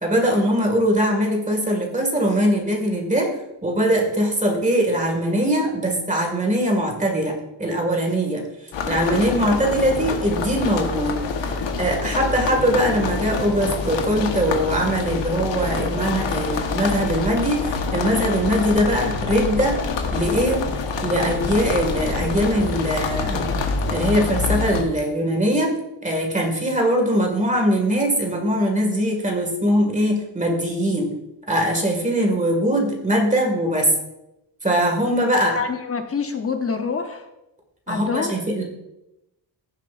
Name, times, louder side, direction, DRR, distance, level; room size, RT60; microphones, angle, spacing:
voice 1, 0.0-3.3 3.6-7.3 7.6-8.4 8.9-11.1 11.4-19.8 20.1-20.6 21.0-23.5 23.9-25.7 26.0-31.1 31.5-33.9 34.6-35.6 37.9-38.6, equal, 15° right, 1 dB, 1.9 m, -21 dB
sound 1, 8.7-24.8, left 4 dB, 80° left, 1.3 m, -26 dB
voice 2, 35.5-37.2 37.9-38.3, left 5 dB, 30° left, 6 dB, 0.8 m, -26 dB
15.5 x 7.4 x 2.5 m, 0.90 s
wide cardioid pair, 160°, 44 cm